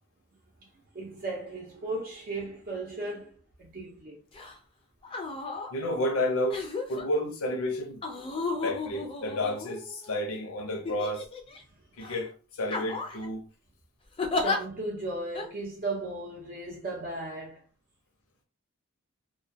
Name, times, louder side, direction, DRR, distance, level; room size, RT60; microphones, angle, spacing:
voice 1, 0.6-3.3 3.6-4.2 11.7-11.8 14.4-17.6, right 2 dB, 40° right, 0.6 m, -36 dB
sound 1, 4.3-4.5 5.0-5.7 6.5-7.0 8.0-10.1 10.8-11.6 12.0-12.2 12.7-13.3 14.2-14.6 15.3-15.5, left 3 dB, 25° left, 0.4 m, -33 dB
voice 2, 5.7-8.0 8.5-11.3 12.0-13.4, left 1 dB, 70° left, 0.6 m, -31 dB
2.2 x 2.2 x 2.6 m
head